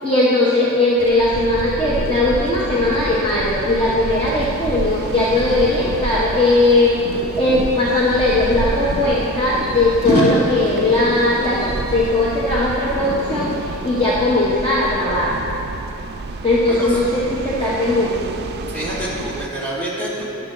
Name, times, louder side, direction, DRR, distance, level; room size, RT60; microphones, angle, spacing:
voice 1, 0.0-6.9 7.4-15.3 16.4-18.3, left 2 dB, 25° left, -7 dB, 0.9 m, -18 dB
sound 1, 1.0-19.5, right 3 dB, 45° right, 0.4 m, -30 dB
sound 2, 4.4-4.6 4.9-7.7 8.5-9.7 10.0-12.6 12.8-13.6 14.0-14.2, left 1 dB, 45° left, 1.8 m, -26 dB
voice 2, 16.7-17.0 18.7-20.2, equal, 10° left, -6 dB, 1.9 m, -27 dB
10.5 x 6.8 x 3.8 m, 2.9 s
head